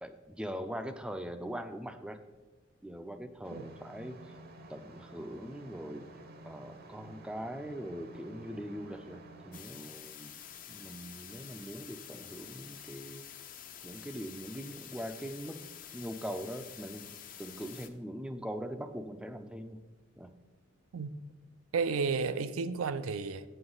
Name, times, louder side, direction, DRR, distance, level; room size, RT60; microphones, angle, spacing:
voice 1, 0.0-2.2 2.8-4.3 4.7-6.1 6.4-10.4 10.7-13.3 13.8-15.6 15.9-17.1 17.4-19.8 20.2-20.3, equal, 5° right, 0.4 m, -41 dB
sound 1, 3.4-9.6, right 2 dB, 45° right, 0.7 m, -51 dB
sound 2, 9.5-17.9, left 9 dB, 40° left, 0.6 m, -48 dB
voice 2, 21.7-23.4, right 5 dB, 80° right, 0.5 m, -32 dB
8.7 x 7.8 x 3.9 m
head